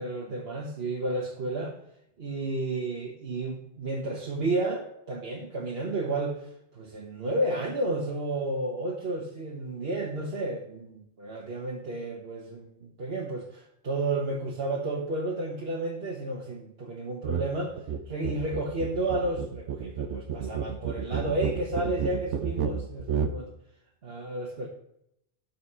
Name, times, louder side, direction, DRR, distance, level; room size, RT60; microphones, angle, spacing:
voice 1, 0.0-1.8 2.2-17.8 18.1-23.5 24.0-24.7, right 2 dB, 60° right, -2 dB, 1.5 m, -32 dB
sound 1, 17.2-17.5 17.8-23.4, right 7 dB, 90° right, 1.0 m, -31 dB
12.5 x 4.7 x 5.7 m, 0.79 s
omnidirectional pair, 1.2 m